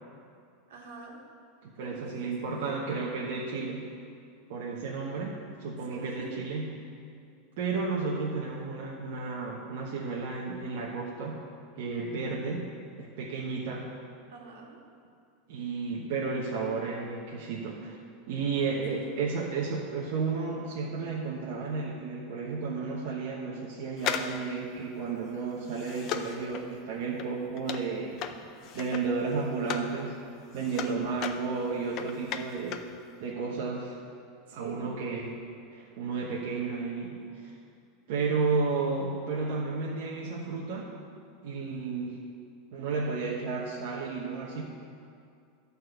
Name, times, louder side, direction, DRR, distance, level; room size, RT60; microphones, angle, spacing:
voice 1, 0.7-1.2 1.7-2.8 5.8-6.3 14.3-14.8 18.5-19.2 30.7-31.1 34.5-34.9, right 4 dB, 75° right, -1 dB, 1.8 m, -44 dB
voice 2, 1.6-3.9 4.5-6.7 7.6-11.4 11.8-12.7 13.0-13.9 15.5-18.0 18.3-28.2 28.7-30.2 30.5-32.8 33.2-34.0 34.5-35.3 35.7-37.5 38.1-40.9 41.4-42.2 42.7-44.6, right 4 dB, 55° right, -5 dB, 1.1 m, -32 dB
sound 1, 24.0-29.9 30.3-33.0 33.2-33.3, left 9 dB, 35° left, 0.5 m, -37 dB
11.5 x 4.1 x 7.9 m, 2.4 s
supercardioid pair, 175°, 0 cm